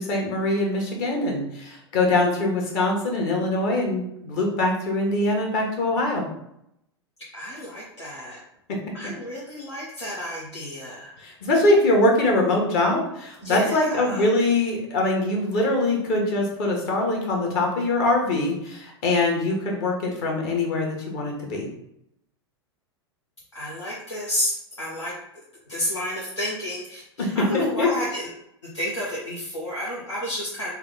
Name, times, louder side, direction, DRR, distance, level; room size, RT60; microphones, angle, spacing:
voice 1, 0.0-6.3 11.2-21.7 27.2-27.9, left 2 dB, 50° left, 0 dB, 1.2 m, -23 dB
voice 2, 7.3-8.4 8.9-11.1 13.4-14.3 23.5-25.1 25.7-28.2 28.6-30.7, equal, 90° left, -8 dB, 1.0 m, -31 dB
3.5 x 2.2 x 3.8 m, 0.78 s
figure-of-eight pair, 90°, 15 cm